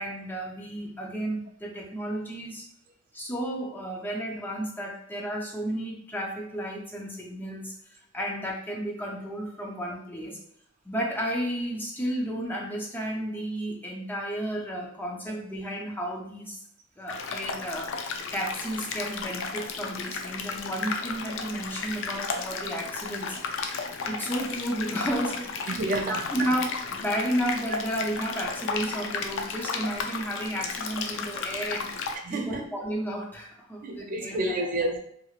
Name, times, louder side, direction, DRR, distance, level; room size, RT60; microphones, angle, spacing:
voice 1, 0.0-2.7 3.1-10.4 10.8-16.6 17.0-17.9 18.3-25.6 26.1-31.9 32.3-34.6, right 1 dB, 10° left, -1 dB, 0.5 m, -32 dB
sound 1, 17.1-32.1, left 5 dB, 65° left, 0.4 m, -34 dB
voice 2, 25.7-26.3 32.2-32.6 33.8-35.0, right 1 dB, 40° right, 2 dB, 0.4 m, -29 dB
2.8 x 2.8 x 2.4 m, 0.69 s
head